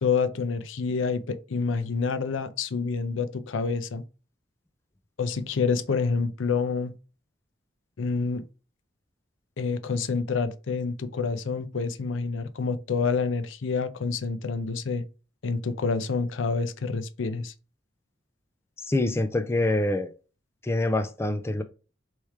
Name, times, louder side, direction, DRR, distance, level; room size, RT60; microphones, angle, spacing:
voice 1, 0.0-4.0 5.2-6.9 8.0-8.4 9.6-15.0 15.4-17.5, left 4 dB, 80° left, 0.5 m, -28 dB
voice 2, 18.8-20.1 20.6-21.6, left 2 dB, 15° left, 0.4 m, -25 dB
3.3 x 3.1 x 4.5 m
head